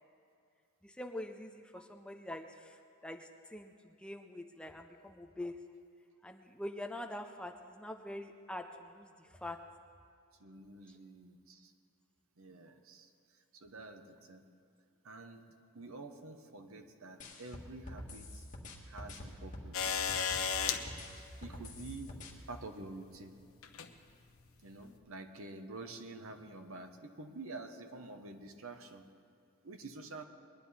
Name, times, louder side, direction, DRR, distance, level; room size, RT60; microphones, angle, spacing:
voice 1, 0.8-5.6 6.2-9.6 12.5-12.6, left 1 dB, 5° left, 5 dB, 0.5 m, -45 dB
voice 2, 10.4-11.7 12.4-13.1 13.5-14.4 15.0-15.4 15.7-18.4 18.9-19.9 21.2-22.1 22.5-23.3 24.6-29.0 29.6-30.2, right 2 dB, 70° right, 6 dB, 1.0 m, -48 dB
sound 1, 17.2-20.5 20.9-22.3, left 1 dB, 35° left, 1.7 m, -47 dB
sound 2, 19.7-20.8 22.2-22.3 23.6-23.9 24.8-24.9, left 7 dB, 70° left, 0.9 m, -33 dB
21.5 x 10.5 x 4.2 m, 2.5 s
head